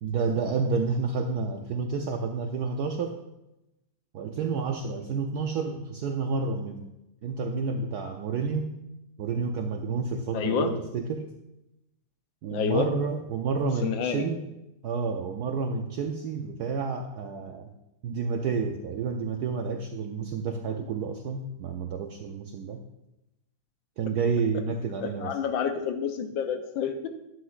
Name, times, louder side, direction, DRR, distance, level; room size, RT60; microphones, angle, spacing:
voice 1, 0.0-3.2 4.1-6.9 7.2-8.8 9.2-11.3 12.4-14.4 14.8-17.7 18.0-22.8 24.0-25.4, right 5 dB, 80° right, 4 dB, 0.9 m, -30 dB
voice 2, 10.3-10.7 12.5-12.9 13.8-14.3 25.2-27.1, left 7 dB, 70° left, 7 dB, 1.4 m, -28 dB
11.5 x 9.0 x 2.4 m, 0.92 s
omnidirectional pair, 2.3 m